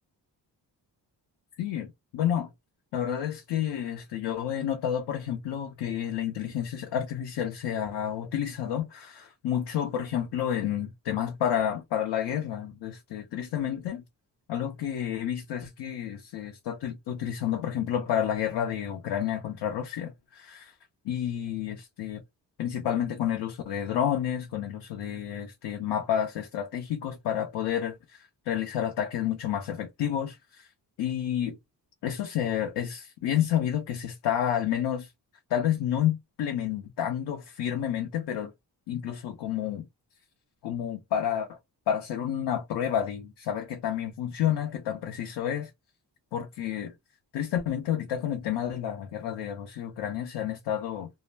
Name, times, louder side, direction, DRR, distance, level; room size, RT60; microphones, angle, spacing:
voice 1, 1.6-2.5 2.9-14.0 14.5-20.7 21.0-22.2 22.6-30.7 31.0-31.6 32.0-35.1 35.5-38.5 38.9-39.9 40.6-41.6 41.9-45.7 46.3-46.9 47.3-51.1, left 10 dB, 75° left, 0.6 m, -30 dB
2.1 x 2.1 x 3.1 m
cardioid pair, 75°, 42 cm